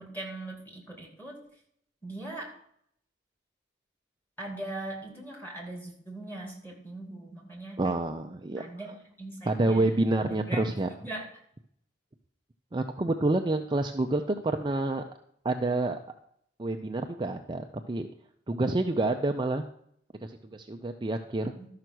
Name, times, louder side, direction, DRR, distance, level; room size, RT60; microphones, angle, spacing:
voice 1, 0.0-1.4 2.0-2.5 4.4-7.8 8.6-10.6 11.0-11.3 21.6-21.7, right 2 dB, 10° left, 0 dB, 2.7 m, -40 dB
voice 2, 7.8-8.6 9.5-10.9 12.7-15.0 15.4-16.0 16.6-18.1 18.5-19.6 20.2-21.5, right 2 dB, 25° right, 4 dB, 0.5 m, -28 dB
12.5 x 5.8 x 6.2 m, 0.69 s
head